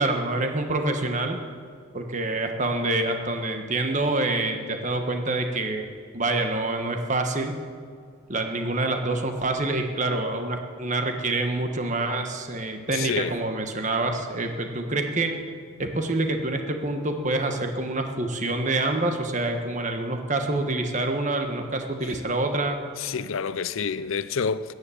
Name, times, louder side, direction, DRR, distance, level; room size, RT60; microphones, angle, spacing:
voice 1, 0.0-1.4 1.9-5.8 6.1-7.5 8.3-15.3 15.8-22.8, right 2 dB, 35° right, 1.4 m, -26 dB
voice 2, 12.9-13.3 23.0-24.7, left 5 dB, 80° left, 0.6 m, -28 dB
15.0 x 9.8 x 8.6 m
head